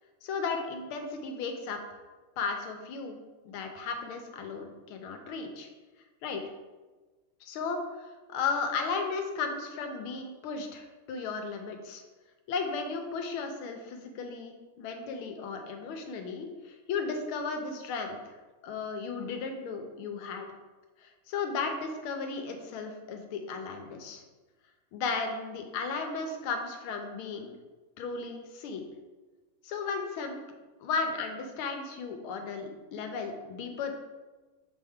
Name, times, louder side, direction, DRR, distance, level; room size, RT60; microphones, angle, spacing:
voice 1, 0.2-1.8 2.4-3.2 3.4-5.7 6.2-6.4 7.4-7.8 8.3-12.0 12.5-18.3 18.6-20.5 21.0-24.2 24.9-27.5 28.0-28.8 29.6-30.4 30.8-33.9, left 4 dB, 80° left, 4 dB, 1.6 m, -35 dB
6.6 x 4.4 x 3.6 m, 1.2 s
omnidirectional pair, 2.4 m